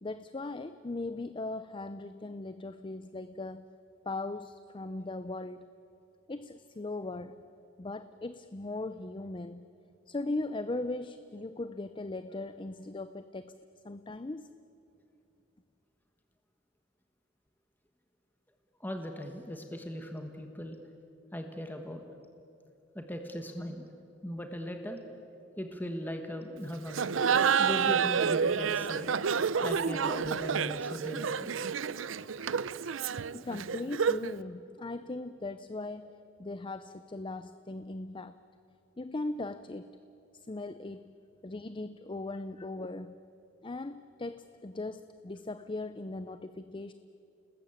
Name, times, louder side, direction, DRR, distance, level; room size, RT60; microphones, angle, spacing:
voice 1, 0.0-3.7 4.0-5.7 6.3-7.4 7.8-9.7 10.1-13.6 13.8-14.5 33.3-36.1 36.4-38.4 39.0-40.0 40.3-41.1 41.4-43.2 43.6-46.9, left 2 dB, 25° left, 12 dB, 0.6 m, -39 dB
voice 2, 18.8-20.8 21.3-22.0 22.9-23.9 24.2-25.0 25.6-29.1 29.6-31.5, equal, 10° left, 4 dB, 1.3 m, -39 dB
Laughter, 26.9-34.4, right 6 dB, 90° right, 0.6 m, -29 dB
29.5 x 20.0 x 8.8 m, 2.7 s
head